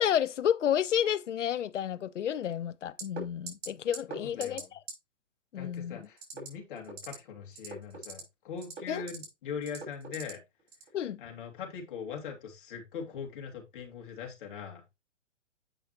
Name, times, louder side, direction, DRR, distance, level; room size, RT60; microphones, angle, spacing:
voice 1, 0.0-4.6 5.5-6.1 8.9-9.0 10.9-11.2, left 9 dB, 80° left, 0.7 m, -30 dB
sound 1, 3.0-3.2 3.5-3.7 3.9-4.2 4.4-4.6 4.9-5.0 6.2-6.5 6.8-7.1 7.5-8.2 8.6-9.2 9.7-10.3 10.7-10.9, right 4 dB, 60° right, 4.7 m, -40 dB
voice 2, 4.1-4.7 5.6-10.4 11.2-14.8, left 6 dB, 45° left, 2.4 m, -41 dB
8.1 x 5.6 x 3.0 m
hypercardioid pair, 135°, 36 cm